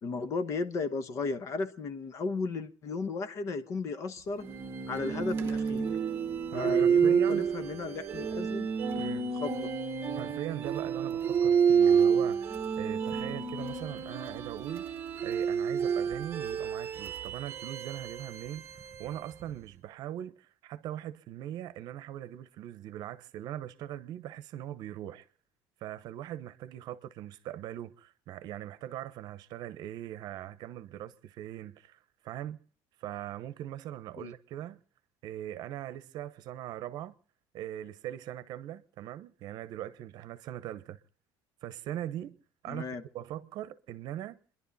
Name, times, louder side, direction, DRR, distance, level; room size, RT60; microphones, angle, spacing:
voice 1, 0.0-4.5 4.9-6.0 6.5-8.7 9.4-9.7 34.2-34.3 42.7-43.0, left 4 dB, 40° left, 1.1 m, -35 dB
sound 1, 4.4-19.5, right 7 dB, 30° right, 1.1 m, -29 dB
voice 2, 6.5-7.5 8.9-9.3 10.2-14.9 15.2-25.3 25.8-32.6 33.0-34.8 35.2-37.1 37.5-41.0 41.6-42.4 42.6-44.4, right 12 dB, 55° right, 0.9 m, -40 dB
29.5 x 11.0 x 4.1 m
cardioid pair, 165°, 8 cm